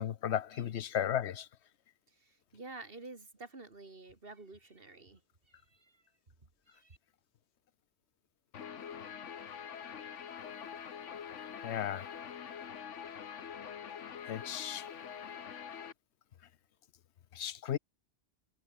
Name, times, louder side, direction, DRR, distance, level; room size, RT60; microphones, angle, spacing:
voice 1, 0.0-1.5 11.6-12.1 14.3-14.9 17.3-17.8, left 10 dB, 70° left, 1.0 m, -35 dB
voice 2, 2.1-5.2 5.5-6.0 6.7-7.0, right 3 dB, 50° right, 2.9 m, -50 dB
Guitar, 8.5-15.9, left 7 dB, 90° left, 1.5 m, -45 dB
omnidirectional pair, 1.2 m